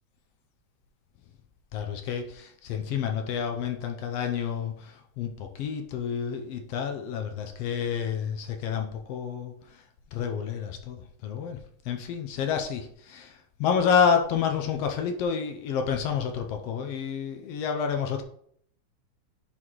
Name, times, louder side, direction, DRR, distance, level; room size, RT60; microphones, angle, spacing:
voice 1, 1.7-11.6 11.8-18.2, left 7 dB, 75° left, 4 dB, 1.5 m, -29 dB
11.0 x 4.1 x 3.0 m, 0.64 s
omnidirectional pair, 3.3 m